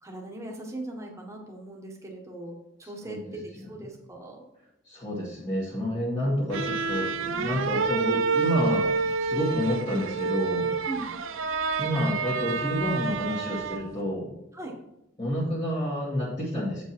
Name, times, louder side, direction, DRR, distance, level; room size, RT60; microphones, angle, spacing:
voice 1, 0.0-4.4 7.4-7.8 10.8-11.2 14.5-14.8, right 1 dB, 15° right, 0 dB, 1.5 m, -39 dB
voice 2, 4.9-8.9 9.2-10.7 11.8-14.3 15.2-16.8, equal, 25° left, -7 dB, 2.0 m, -29 dB
sound 1, 6.5-14.0, right 4 dB, 90° right, 0.6 m, -28 dB
8.3 x 5.3 x 4.5 m, 0.84 s
head